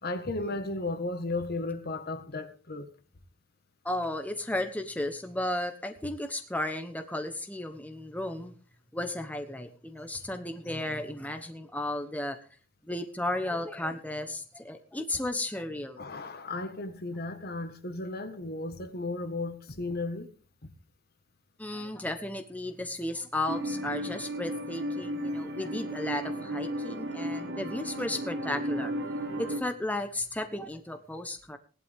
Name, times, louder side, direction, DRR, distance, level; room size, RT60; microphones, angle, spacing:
voice 1, 0.0-2.9 16.0-20.3, left 2 dB, 50° left, 1.7 m, -34 dB
voice 2, 3.8-8.5 8.9-12.4 12.9-16.0 21.6-28.9 29.4-31.6, left 1 dB, 10° left, 1.1 m, -34 dB
sound 1, 23.5-29.6, equal, 75° right, 2.8 m, -34 dB
18.0 x 11.5 x 3.7 m
head